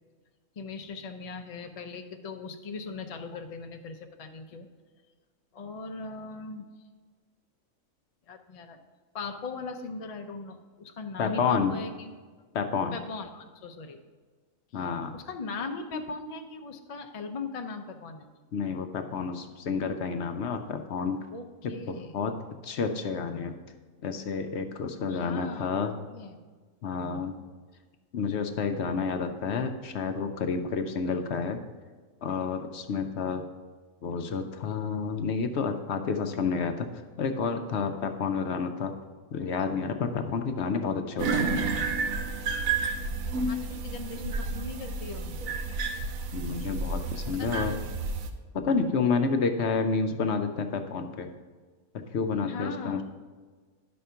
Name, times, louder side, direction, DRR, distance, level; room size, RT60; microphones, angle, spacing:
voice 1, 0.6-4.7 5.5-6.7 8.3-8.8 9.1-12.1 12.9-14.0 14.7-14.8 15.1-18.3 21.3-22.1 25.1-26.4 43.5-45.6 47.4-47.9 52.4-53.0, left 4 dB, 45° left, 5 dB, 0.4 m, -39 dB
voice 2, 11.2-11.7 12.5-13.0 14.7-15.2 18.5-21.2 21.6-22.3 22.6-23.5 24.0-25.9 26.8-27.3 28.1-31.6 32.2-33.4 34.0-36.9 37.2-38.9 39.3-41.6 46.3-47.7 48.5-51.3 51.9-53.0, left 5 dB, 60° left, 7 dB, 0.8 m, -30 dB
sound 1, 41.2-48.3, right 4 dB, 85° right, 1.1 m, -31 dB
10.5 x 4.3 x 5.6 m, 1.4 s
omnidirectional pair, 1.4 m